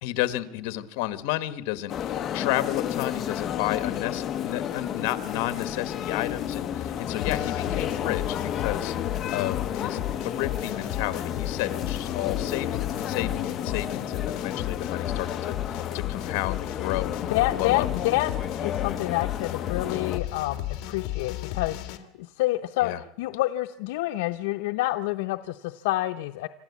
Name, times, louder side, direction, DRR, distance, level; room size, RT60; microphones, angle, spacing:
voice 1, 0.0-8.9 9.3-17.9 22.8-23.0, left 16 dB, 70° left, 13 dB, 1.4 m, -32 dB
sound 1, 1.9-20.2, left 9 dB, 30° left, 1.0 m, -32 dB
sound 2, 4.2-14.8, right 4 dB, 35° right, 4.3 m, -57 dB
sound 3, 7.2-22.0, left 13 dB, 55° left, 2.0 m, -34 dB
voice 2, 17.3-18.3 18.6-26.5, left 17 dB, 85° left, 7 dB, 0.7 m, -28 dB
27.0 x 13.5 x 8.4 m, 0.94 s
cardioid pair, 155°, 0 cm